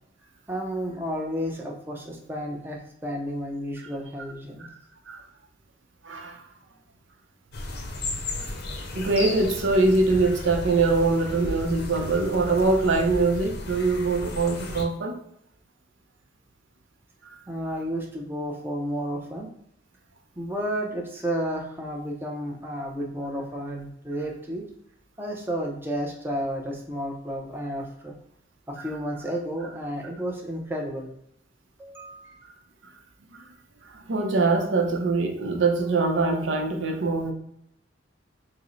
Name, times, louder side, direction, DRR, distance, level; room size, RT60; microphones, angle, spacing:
voice 1, 0.5-4.6 17.5-19.5 20.4-24.6 25.2-28.1 28.7-31.1 31.8-32.4, equal, 10° right, 0 dB, 0.5 m, -32 dB
voice 2, 6.0-6.4 8.9-15.2 33.3-33.4 33.9-37.3, right 3 dB, 85° right, 3 dB, 0.6 m, -23 dB
sound 1, 7.5-14.8, left 2 dB, 60° left, 0.6 m, -35 dB
4.7 x 2.1 x 3.1 m, 0.74 s
head